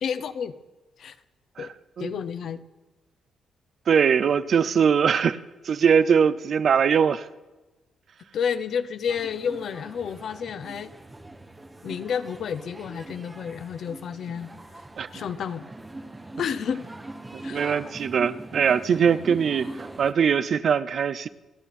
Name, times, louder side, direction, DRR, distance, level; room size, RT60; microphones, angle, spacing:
voice 1, 0.0-0.5 1.0-1.1 1.6-1.7 2.0-2.6 8.3-10.9 11.8-14.5 15.1-15.7 16.4-16.9 17.4-17.7, left 7 dB, 55° left, 0.9 m, -30 dB
voice 2, 3.9-5.4 5.6-7.3 15.0-15.1 17.3-21.3, right 7 dB, 45° right, 0.6 m, -21 dB
sound 1, 9.1-20.1, right 2 dB, 10° right, 1.1 m, -42 dB
29.0 x 11.0 x 4.3 m
cardioid pair, 165°, 0 cm